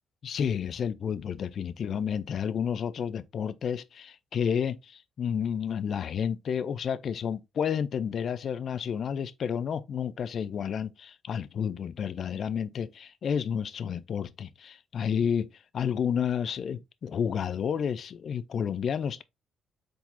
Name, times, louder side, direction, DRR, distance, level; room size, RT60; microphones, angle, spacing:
voice 1, 0.2-15.5 15.7-19.2, left 7 dB, 55° left, 0.4 m, -31 dB
4.7 x 3.8 x 2.6 m
cardioid pair, 90°, 0 cm